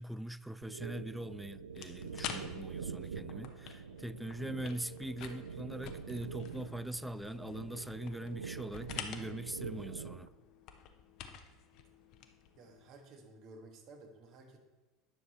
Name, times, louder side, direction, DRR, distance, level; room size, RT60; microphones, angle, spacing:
voice 1, 0.0-10.3, right 1 dB, 5° right, 0.3 m, -42 dB
sound 1, 0.6-10.3, right 6 dB, 80° right, 0.4 m, -45 dB
sound 2, 1.7-12.9, left 8 dB, 50° left, 0.8 m, -49 dB
voice 2, 12.6-14.6, right 2 dB, 50° right, 1.5 m, -54 dB
9.8 x 6.3 x 4.3 m
figure-of-eight pair, 75°, 0 cm